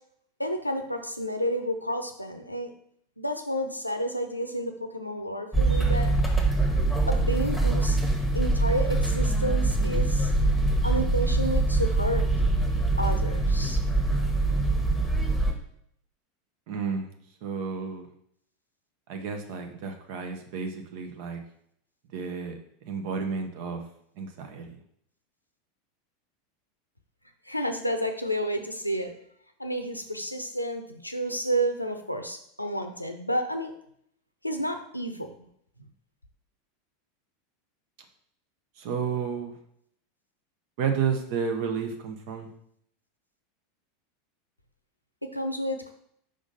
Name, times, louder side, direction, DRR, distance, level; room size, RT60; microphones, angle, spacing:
voice 1, 0.4-2.7 3.2-6.1 7.1-8.0 8.3-10.3 10.8-12.3 13.0-13.8 27.5-29.1 29.6-33.7 34.4-35.3 45.3-45.9, equal, 90° left, 6 dB, 0.6 m, -30 dB
sound 1, 5.5-15.5, right 2 dB, ahead, 1.4 m, -24 dB
voice 2, 16.7-17.1 17.4-18.1 19.1-21.4 22.1-22.5 22.9-23.8 24.2-24.8 38.8-39.6 40.8-42.5, right 6 dB, 50° right, 5 dB, 1.0 m, -31 dB
5.2 x 3.7 x 5.4 m, 0.69 s
figure-of-eight pair, 85°, 0 cm